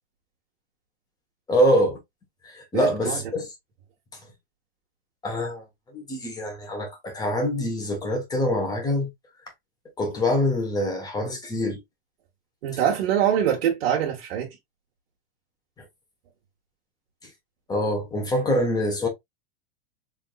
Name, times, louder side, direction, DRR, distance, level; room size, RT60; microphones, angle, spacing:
voice 1, 1.5-2.0 2.4-3.5 4.1-4.2 5.2-9.1 10.0-11.8 15.8-15.9 17.7-19.1, left 1 dB, 15° left, 1.2 m, -25 dB
voice 2, 2.7-3.2 12.6-14.6, right 9 dB, 75° right, 1.4 m, -24 dB
3.6 x 3.6 x 2.4 m
supercardioid pair, 155°, 30 cm